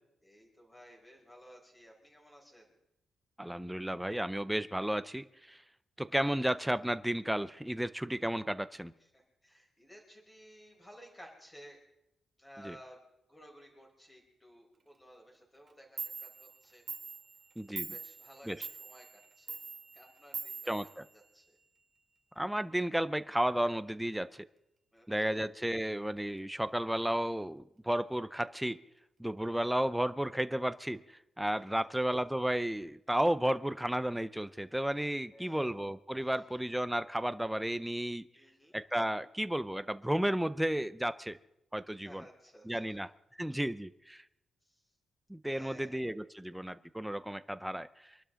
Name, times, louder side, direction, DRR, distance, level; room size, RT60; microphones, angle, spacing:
voice 1, 0.2-2.8 9.0-11.8 12.4-13.0 13.3-16.8 17.9-19.6 19.9-21.6 24.9-25.1 31.5-31.6 35.3-35.8 36.2-36.4 38.3-38.8 42.0-42.8 44.6-44.8 45.5-46.0, equal, 10° left, -1 dB, 4.7 m, -56 dB
voice 2, 3.4-5.6 6.0-8.9 12.6-12.8 17.6-17.9 18.5-18.7 20.7-21.1 22.4-24.4 25.1-28.8 29.2-31.0 31.4-38.3 38.7-41.4 41.7-42.2 42.7-43.1 43.4-44.2 45.3-47.9, right 1 dB, 5° right, 14 dB, 0.6 m, -33 dB
Clock, 15.7-15.8 16.0-21.6, right 5 dB, 35° right, 1.4 m, -44 dB
25.5 x 12.0 x 3.8 m, 0.85 s
cardioid pair, 130°, 0 cm